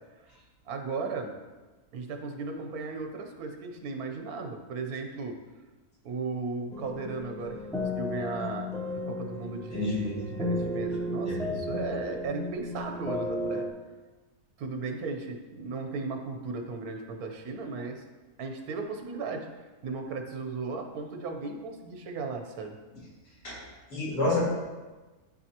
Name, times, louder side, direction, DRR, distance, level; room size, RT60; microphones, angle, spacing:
voice 1, 0.7-1.3 1.9-5.4 6.0-8.7 9.0-13.7 14.6-18.0 18.4-19.5 19.8-22.8, right 4 dB, 75° right, 4 dB, 1.3 m, -36 dB
sound 1, 6.7-13.7, left 1 dB, 5° left, 0.3 m, -34 dB
voice 2, 9.7-10.4 11.3-11.6 23.4-23.6 23.9-24.5, left 2 dB, 85° left, -8 dB, 2.9 m, -29 dB
11.5 x 4.1 x 2.9 m, 1.2 s
omnidirectional pair, 1.6 m